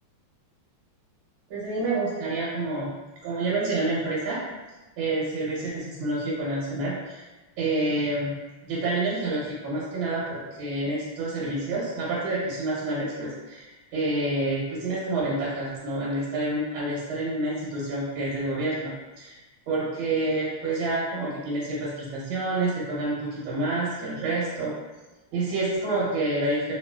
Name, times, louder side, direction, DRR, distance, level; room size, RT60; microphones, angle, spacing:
voice 1, 1.5-2.9 3.2-4.4 5.0-7.2 7.6-8.4 8.6-19.4 19.7-24.7 25.3-26.7, right 2 dB, 75° right, -6 dB, 1.5 m, -28 dB
3.0 x 2.8 x 2.2 m, 1.1 s
omnidirectional pair, 2.2 m